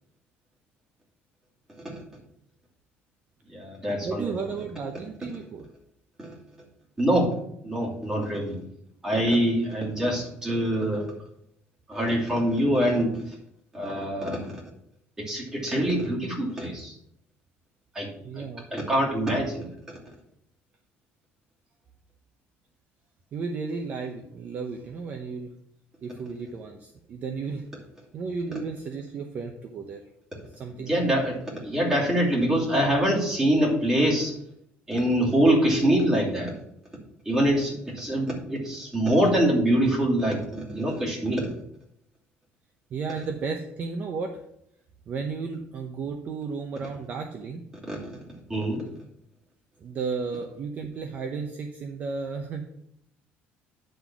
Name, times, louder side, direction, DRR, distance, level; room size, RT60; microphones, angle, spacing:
voice 1, 3.5-4.3 6.2-6.3 7.0-7.3 7.6-8.6 9.0-11.1 11.9-13.2 13.7-14.5 15.2-16.9 17.9-18.1 18.4-18.5 18.7-19.7 30.9-31.4 31.6-34.3 34.9-36.6 37.2-41.5 47.9-48.2 48.5-48.8, right 1 dB, 15° right, -4 dB, 2.7 m, -24 dB
voice 2, 4.0-5.6 18.2-18.7 23.3-25.5 26.0-27.7 28.1-30.0 30.5-31.2 42.9-44.4 45.1-47.6 49.8-52.6, right 5 dB, 40° right, 5 dB, 0.7 m, -33 dB
10.0 x 3.9 x 6.0 m, 0.73 s
cardioid pair, 150°, 4 cm